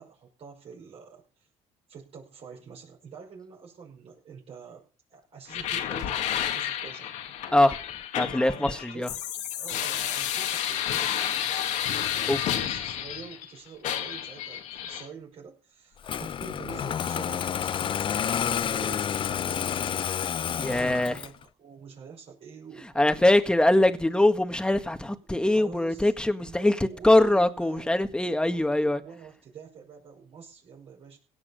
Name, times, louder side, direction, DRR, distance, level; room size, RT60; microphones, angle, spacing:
voice 1, 0.0-1.5 1.9-7.1 8.2-9.2 9.6-11.3 12.4-18.2 18.4-19.8 20.6-23.2 23.9-24.0 25.3-27.9 28.3-31.2, right 6 dB, 55° right, 5.8 m, -46 dB
sound 1, 5.5-13.5 13.8-15.0, left 10 dB, 75° left, 2.1 m, -31 dB
voice 2, 8.1-9.1 12.0-12.5 20.6-21.2 22.9-26.7 27.0-29.0, left 1 dB, 5° left, 1.7 m, -23 dB
Engine starting, 16.0-21.4, left 8 dB, 45° left, 0.6 m, -29 dB
17.0 x 7.2 x 6.7 m
cardioid pair, 90°, 12 cm